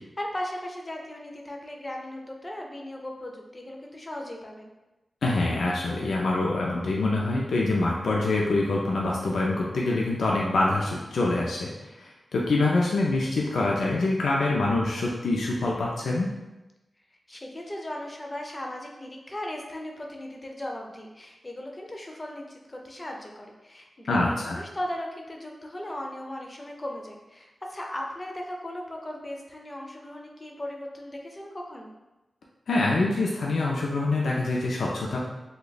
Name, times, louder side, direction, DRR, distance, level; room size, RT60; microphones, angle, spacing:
voice 1, 0.2-4.7 17.3-31.9, left 1 dB, 20° left, 0 dB, 0.4 m, -37 dB
voice 2, 5.2-16.3 24.1-24.6 32.7-35.2, left 2 dB, 85° left, -3 dB, 0.4 m, -25 dB
2.9 x 2.2 x 3.9 m, 1.0 s
wide cardioid pair, 180°, 0 cm